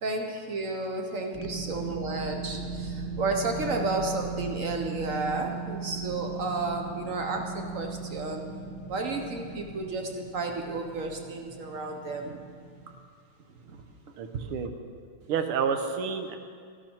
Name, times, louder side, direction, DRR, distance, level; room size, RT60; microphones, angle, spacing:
voice 1, 0.0-8.4 8.9-12.4 14.4-14.5, right 3 dB, 60° right, 3 dB, 0.9 m, -32 dB
sound 1, 1.3-12.9, right 4 dB, 5° left, 0.6 m, -38 dB
voice 2, 14.2-14.7 15.3-16.4, right 6 dB, 85° right, 7 dB, 1.8 m, -29 dB
13.5 x 11.5 x 4.5 m, 2.1 s
omnidirectional pair, 2.4 m